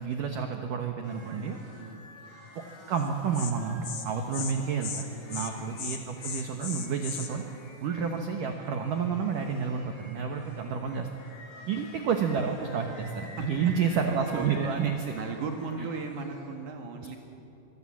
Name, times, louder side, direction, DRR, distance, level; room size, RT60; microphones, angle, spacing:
voice 1, 0.0-1.6 2.9-7.4 7.8-11.1 11.7-15.1 15.8-15.9, right 6 dB, 90° right, 4 dB, 1.8 m, -30 dB
sound 1, 1.0-16.4, equal, 65° left, 10.5 m, -50 dB
Insect, 3.0-3.1 3.3-3.5 3.8-4.0 4.3-4.5 4.8-5.0 5.3-5.5 5.8-7.3, left 7 dB, 85° left, 1.4 m, -36 dB
voice 2, 14.3-14.7 15.1-17.2, right 4 dB, 55° right, 3 dB, 2.4 m, -36 dB
25.5 x 23.0 x 7.4 m, 2.9 s
omnidirectional pair, 5.8 m